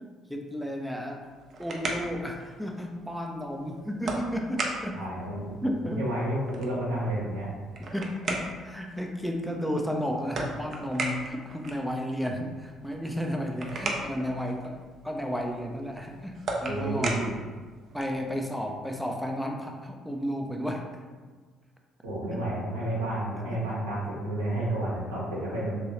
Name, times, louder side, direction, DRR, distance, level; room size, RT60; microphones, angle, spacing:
voice 1, 0.3-1.3 1.6-5.0 5.6-6.1 7.9-14.8 15.0-16.3 16.6-17.2 17.9-20.8 22.3-22.4, equal, ahead, 1 dB, 0.5 m, -32 dB
sound 1, 1.2-18.3, right 2 dB, 50° right, 0.5 m, -38 dB
voice 2, 4.9-5.5 6.0-7.5 16.7-17.3 22.0-25.8, right 1 dB, 85° right, -7 dB, 0.8 m, -30 dB
3.1 x 2.2 x 2.9 m, 1.5 s
hypercardioid pair, 50°, 0 cm